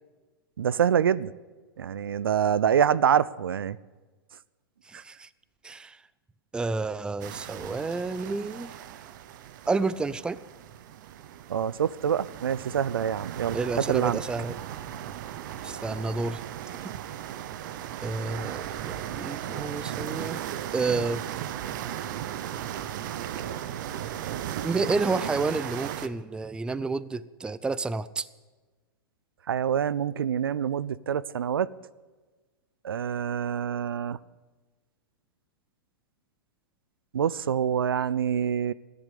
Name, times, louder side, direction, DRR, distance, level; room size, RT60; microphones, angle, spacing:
voice 1, 0.6-1.3 1.8-3.8 11.5-13.6 13.9-14.2 29.5-31.7 32.8-34.2 37.1-38.7, right 8 dB, 80° right, 19 dB, 0.5 m, -26 dB
voice 2, 4.9-5.3 5.6-6.0 6.5-8.7 9.7-10.4 13.5-14.6 15.6-16.4 16.8-16.9 18.0-20.4 20.7-21.2 24.6-28.3, right 3 dB, 5° right, 17 dB, 0.5 m, -30 dB
sound 1, 7.2-26.1, right 10 dB, 55° right, 1.0 m, -36 dB
14.5 x 10.5 x 8.4 m, 1.3 s
hypercardioid pair, 110°, 12 cm